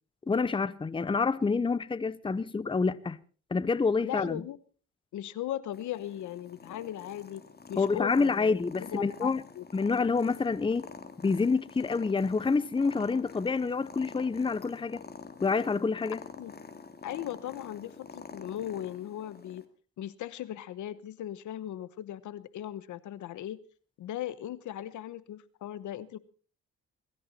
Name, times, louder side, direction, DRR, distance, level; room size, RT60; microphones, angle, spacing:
voice 1, 0.3-3.2 3.5-4.4 7.8-9.4 9.7-10.8 11.2-15.0 15.4-16.2, left 4 dB, 15° left, 0.7 m, -27 dB
voice 2, 4.0-4.6 5.1-7.4 7.7-9.6 16.4-16.6 17.0-19.6 20.0-23.6 24.0-26.2, left 12 dB, 75° left, 1.1 m, -38 dB
Purr, 5.7-19.6, left 4 dB, 35° left, 2.2 m, -47 dB
22.0 x 14.0 x 4.2 m
cardioid pair, 90°, 30 cm